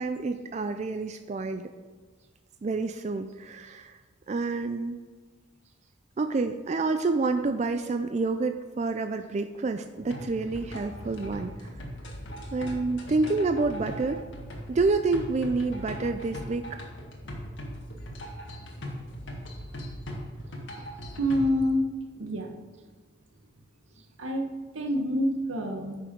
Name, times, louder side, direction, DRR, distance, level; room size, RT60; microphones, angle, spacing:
voice 1, 0.0-1.6 2.6-4.0 4.3-5.0 6.2-11.7 12.5-14.2 14.7-16.8, right 3 dB, 35° right, 8 dB, 0.3 m, -28 dB
sound 1, 10.0-21.6, equal, 65° left, 1.7 m, -39 dB
voice 2, 21.2-22.5 24.2-26.0, equal, 85° right, 3 dB, 1.3 m, -27 dB
9.5 x 6.0 x 5.2 m, 1.4 s
head